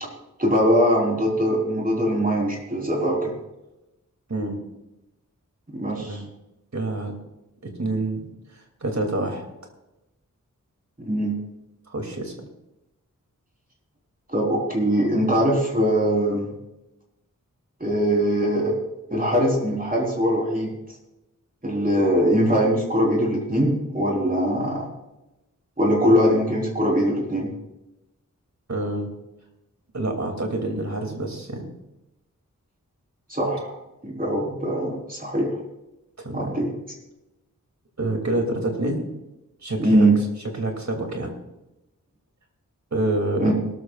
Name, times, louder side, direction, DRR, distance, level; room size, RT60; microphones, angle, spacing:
voice 1, 0.4-3.3 5.7-6.2 11.0-11.3 14.3-16.5 17.8-18.7 19.1-20.7 21.6-24.9 25.8-27.5 33.3-33.7 34.0-35.5 36.3-36.7 39.8-40.2 43.4-43.5, equal, 25° right, -1 dB, 4.1 m, -21 dB
voice 2, 5.9-6.3 6.7-7.1 7.6-9.4 11.9-12.3 28.7-29.1 29.9-31.7 36.2-36.5 38.0-39.0 39.6-40.1 40.5-41.3 42.9-43.5, right 2 dB, 55° right, 3 dB, 2.7 m, -27 dB
20.5 x 13.5 x 2.4 m, 0.94 s
wide cardioid pair, 75°, 32 cm